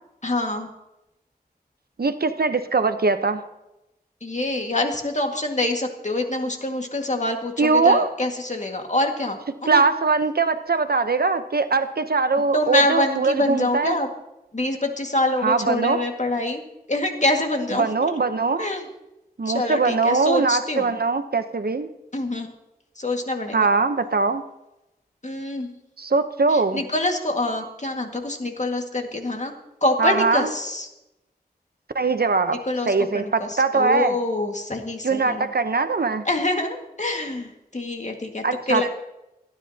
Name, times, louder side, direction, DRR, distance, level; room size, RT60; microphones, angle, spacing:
voice 1, 0.2-0.7 4.2-9.8 12.5-14.1 14.5-16.6 16.9-18.2 18.6-18.9 19.5-20.9 22.1-22.5 23.0-23.7 25.2-25.7 26.5-29.5 29.8-30.9 32.7-35.5 36.3-38.9, left 2 dB, 45° left, 3 dB, 1.9 m, -25 dB
voice 2, 2.0-3.4 7.6-8.1 9.7-14.0 15.4-16.0 17.8-18.7 19.4-21.9 23.5-24.4 26.0-26.8 30.0-30.5 31.9-32.6 32.9-34.2 35.0-36.2 38.4-38.9, right 4 dB, 75° right, 9 dB, 0.8 m, -21 dB
28.5 x 9.8 x 2.8 m, 0.94 s
wide cardioid pair, 55°, 16 cm